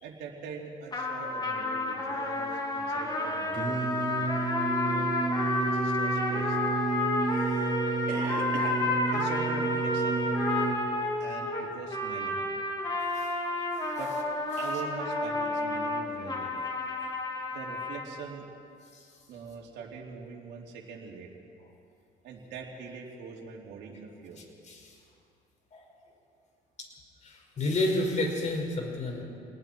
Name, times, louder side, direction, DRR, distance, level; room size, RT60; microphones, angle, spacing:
voice 1, 0.0-4.3 4.8-5.1 5.6-6.6 7.3-7.8 8.1-8.9 9.1-10.3 11.2-12.4 14.0-14.1 14.6-16.6 17.5-18.4 19.3-21.3 22.2-24.4, right 5 dB, 80° right, -2 dB, 3.1 m, -42 dB
sound 1, 0.9-18.1, left 2 dB, 25° left, 3.2 m, -31 dB
Singing, 3.5-10.8, right 4 dB, 30° right, 5.2 m, -31 dB
voice 2, 27.2-29.2, left 2 dB, 45° left, 0 dB, 5.7 m, -30 dB
28.5 x 20.0 x 4.6 m, 2.5 s
cardioid pair, 110°, 17 cm